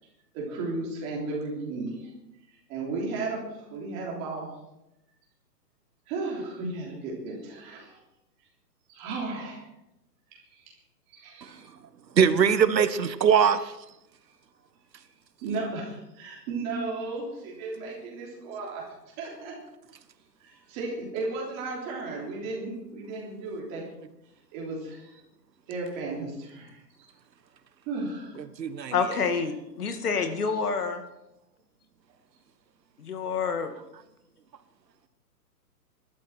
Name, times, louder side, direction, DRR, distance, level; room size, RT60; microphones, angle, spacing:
voice 1, 0.3-2.1 2.7-4.5 6.1-8.0 8.9-9.6 10.5-10.6 11.1-11.7 15.4-18.9 19.2-19.5 20.4-23.8 24.5-25.2 25.7-26.8 27.8-28.3, right 3 dB, 15° right, 3.4 m, -34 dB
voice 2, 12.2-13.6 28.6-28.9, right 7 dB, 90° right, 1.5 m, -21 dB
voice 3, 28.9-31.0 33.0-33.7, left 5 dB, 65° left, 2.3 m, -28 dB
22.5 x 12.5 x 4.4 m
hypercardioid pair, 175°, 49 cm